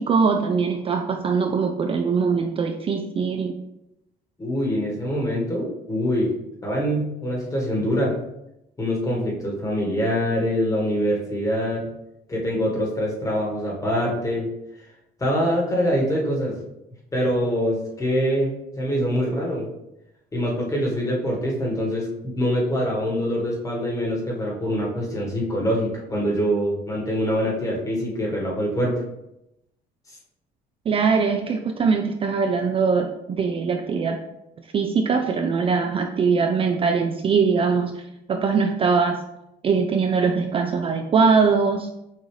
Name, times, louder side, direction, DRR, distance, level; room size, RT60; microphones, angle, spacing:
voice 1, 0.0-3.5 30.9-34.2 34.7-38.0 38.3-39.2 39.6-41.9, right 5 dB, 35° right, 5 dB, 0.3 m, -21 dB
voice 2, 4.4-6.3 6.6-8.1 8.8-11.9 12.3-14.5 15.2-16.6 17.1-19.7 20.3-22.1 22.3-29.0, equal, 20° left, -2 dB, 1.4 m, -24 dB
6.1 x 2.6 x 3.2 m, 0.87 s
cardioid pair, 110°, 17 cm